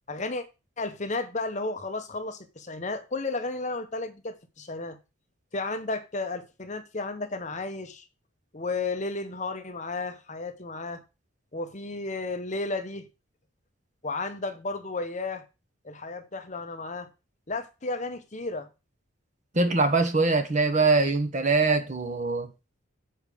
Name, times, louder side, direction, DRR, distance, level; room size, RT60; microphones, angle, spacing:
voice 1, 0.1-0.4 0.8-5.0 5.5-8.0 8.5-11.0 11.5-13.1 14.0-15.4 15.8-17.1 17.5-18.7, left 3 dB, 35° left, 1.0 m, -33 dB
voice 2, 19.5-22.5, right 3 dB, 35° right, 1.2 m, -23 dB
7.2 x 4.8 x 6.7 m
head